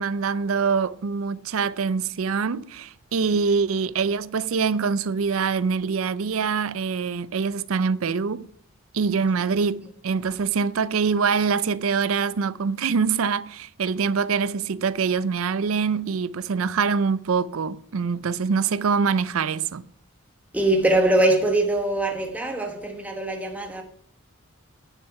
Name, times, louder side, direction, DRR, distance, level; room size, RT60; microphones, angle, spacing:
voice 1, 0.0-8.5 8.9-19.8, right 5 dB, 80° right, 0.5 m, -24 dB
voice 2, 20.5-23.8, right 1 dB, 5° right, 1.2 m, -22 dB
9.9 x 6.6 x 5.7 m
head